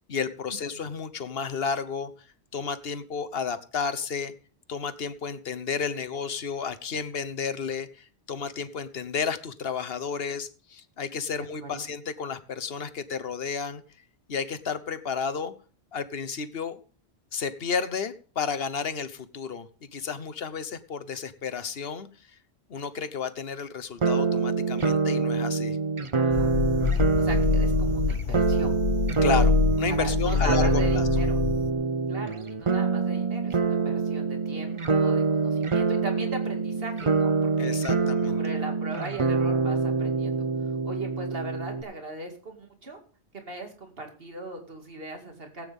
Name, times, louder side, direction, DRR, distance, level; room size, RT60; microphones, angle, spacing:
voice 1, 0.1-2.3 2.5-4.3 4.7-13.8 14.3-15.5 15.9-16.8 17.3-22.4 22.7-25.8 29.2-31.1 37.6-38.4, left 6 dB, 65° left, 13 dB, 1.2 m, -32 dB
voice 2, 11.4-11.9 26.1-26.6 26.9-28.7 29.2-29.4 29.9-31.4 32.1-37.8 38.3-43.0 43.3-45.6, right 2 dB, 60° right, 3 dB, 2.6 m, -39 dB
sound 1, 24.0-41.8, right 4 dB, 30° right, 0.8 m, -25 dB
sound 2, 26.3-31.7, left 6 dB, 40° left, 0.8 m, -26 dB
18.0 x 9.0 x 3.6 m, 0.38 s
omnidirectional pair, 1.1 m